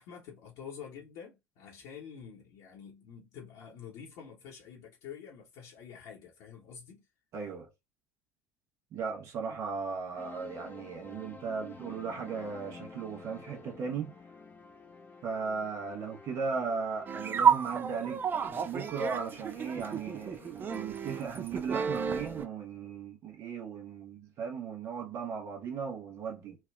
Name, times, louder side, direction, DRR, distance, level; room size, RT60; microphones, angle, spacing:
voice 1, 0.0-7.0, left 7 dB, 55° left, 0.8 m, -48 dB
voice 2, 7.3-7.7 8.9-14.1 15.2-18.2 18.6-26.6, right 5 dB, 45° right, 0.9 m, -37 dB
sound 1, 10.2-20.7, left 4 dB, 25° left, 0.7 m, -51 dB
sound 2, 17.1-22.4, right 7 dB, 30° right, 0.5 m, -31 dB
3.3 x 2.1 x 2.3 m
figure-of-eight pair, 65°, 7 cm